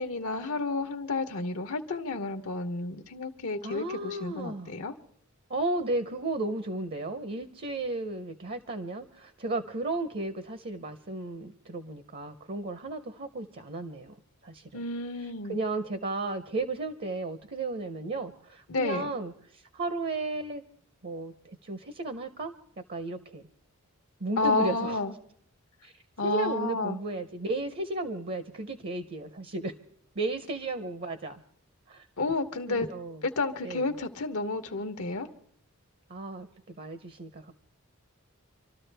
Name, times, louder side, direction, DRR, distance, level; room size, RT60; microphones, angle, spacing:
voice 1, 0.0-4.9 14.7-15.6 18.7-19.1 24.4-25.1 26.2-27.0 32.2-32.9 33.2-35.3, left 3 dB, 75° left, 6 dB, 1.0 m, -31 dB
voice 2, 3.6-4.7 5.5-14.2 14.4-14.8 15.5-20.6 21.0-22.5 22.9-23.4 24.2-25.0 25.8-25.9 26.2-29.7 30.1-31.4 31.9-32.1 32.7-33.2 33.6-33.9 36.1-37.5, right 2 dB, 45° right, 11 dB, 0.7 m, -34 dB
27.0 x 13.0 x 3.4 m, 0.65 s
head